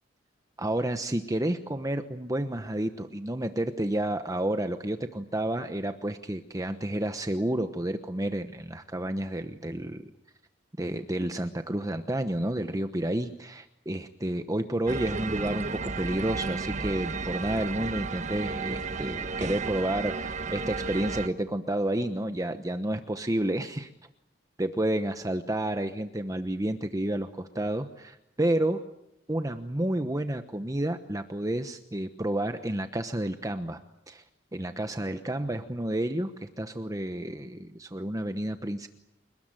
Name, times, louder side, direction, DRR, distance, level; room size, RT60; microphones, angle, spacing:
voice 1, 0.6-10.1 10.8-23.9 24.6-28.9 29.3-34.2 34.5-38.9, right 1 dB, 20° right, 8 dB, 1.0 m, -30 dB
sound 1, 14.9-21.3, right 4 dB, 40° right, 1.2 m, -33 dB
29.5 x 19.5 x 9.1 m, 0.84 s
head